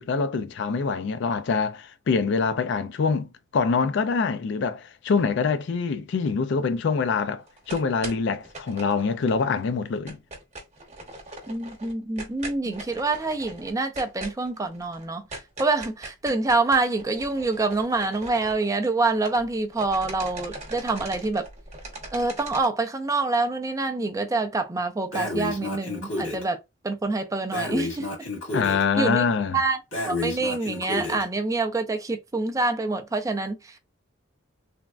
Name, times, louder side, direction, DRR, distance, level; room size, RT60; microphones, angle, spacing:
voice 1, 0.0-10.2 12.6-12.7 28.5-29.6, left 5 dB, 60° left, 0.4 m, -25 dB
sound 1, 7.5-9.6 9.9-19.5 19.7-22.7, right 2 dB, 35° right, 0.9 m, -40 dB
voice 2, 11.5-15.3 15.6-21.5 22.1-28.3 29.0-29.2 29.5-29.8 30.1-33.8, right 3 dB, 15° right, 0.4 m, -26 dB
Breathing, 25.1-26.4 27.5-28.8 29.9-31.2, left 2 dB, 75° left, 1.9 m, -30 dB
3.4 x 2.1 x 2.4 m
head